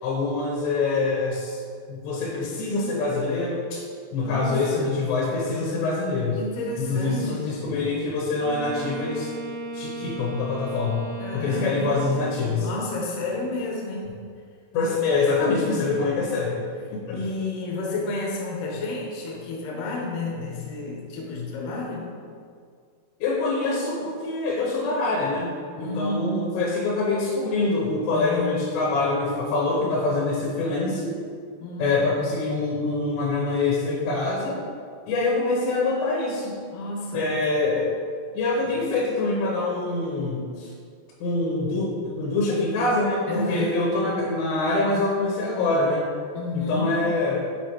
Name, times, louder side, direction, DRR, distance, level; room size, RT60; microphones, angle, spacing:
voice 1, 0.0-1.6 1.9-3.8 4.1-6.4 6.8-9.3 9.7-11.0 11.3-12.7 14.7-16.6 16.9-17.2 23.2-25.5 25.8-31.2 31.8-34.6 35.1-36.5 37.1-37.9 38.3-40.7 41.2-46.0 46.5-47.4, left 3 dB, 85° left, -4 dB, 3.1 m, -25 dB
voice 2, 4.2-4.9 6.4-7.5 11.2-12.0 12.5-14.2 15.9-16.0 17.1-22.1 25.8-26.5 28.1-28.6 31.6-32.0 36.7-37.3 43.3-43.8 46.3-47.0, left 2 dB, 70° left, -2 dB, 2.1 m, -31 dB
Wind instrument woodwind instrument, 8.3-12.6, equal, 75° right, 1.4 m, -36 dB
6.8 x 5.7 x 3.0 m, 2.2 s
omnidirectional pair, 4.9 m